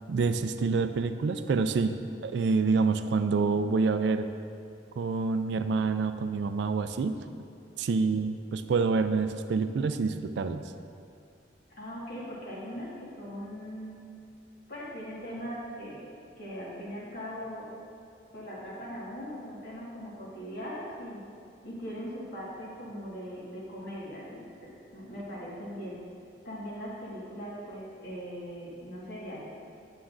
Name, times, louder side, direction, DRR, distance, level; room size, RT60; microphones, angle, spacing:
voice 1, 0.1-4.3 5.0-7.2 7.8-10.6, right 4 dB, 60° right, 9 dB, 0.3 m, -27 dB
voice 2, 11.7-14.0 14.7-16.0 16.4-17.7 18.3-21.2 21.6-26.0 26.4-29.5, equal, 55° left, -6 dB, 1.6 m, -40 dB
9.3 x 7.0 x 2.5 m, 2.4 s
head